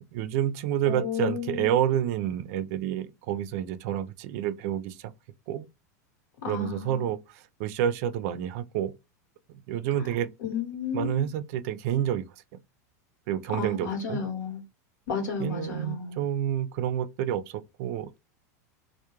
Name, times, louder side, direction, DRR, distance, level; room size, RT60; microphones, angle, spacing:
voice 1, 0.1-5.1 5.5-5.6 6.5-8.9 9.7-10.3 10.9-12.3 13.3-14.2 15.4-18.2, right 10 dB, 60° right, 0.4 m, -29 dB
voice 2, 0.8-1.8 6.4-7.1 10.4-11.2 13.5-14.6 15.1-16.2, left 5 dB, 80° left, 1.0 m, -32 dB
2.2 x 2.1 x 3.0 m
supercardioid pair, 125°, 9 cm